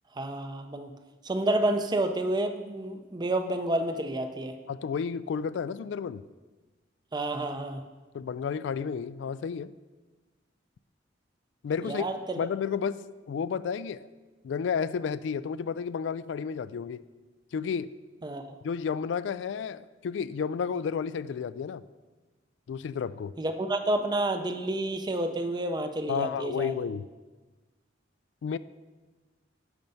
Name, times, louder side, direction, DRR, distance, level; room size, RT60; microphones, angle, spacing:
voice 1, 0.2-0.9 1.2-4.5 7.1-7.8 11.8-12.5 18.2-18.5 23.4-26.8, right 1 dB, 20° right, 7 dB, 0.5 m, -29 dB
voice 2, 4.7-6.3 8.1-9.7 11.6-12.0 12.4-13.0 13.3-14.1 14.4-17.0 17.5-17.9 18.6-21.8 22.7-23.3 26.1-27.1 28.4-28.6, left 6 dB, 70° left, 17 dB, 0.3 m, -31 dB
10.5 x 4.5 x 5.4 m, 1.3 s
head